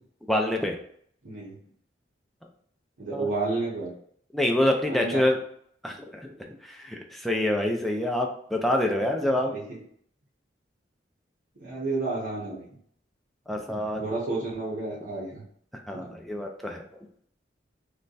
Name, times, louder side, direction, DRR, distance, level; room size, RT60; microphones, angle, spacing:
voice 1, 0.3-0.8 3.1-3.3 4.3-5.4 5.8-6.3 6.6-9.6 13.5-14.0 15.7-16.8, left 1 dB, ahead, 1 dB, 0.4 m, -26 dB
voice 2, 1.2-1.6 3.0-3.9 4.9-5.2 9.5-9.8 11.6-12.7 14.0-15.4 15.9-16.1, right 3 dB, 70° right, -8 dB, 1.0 m, -31 dB
3.3 x 2.2 x 3.9 m, 0.64 s
head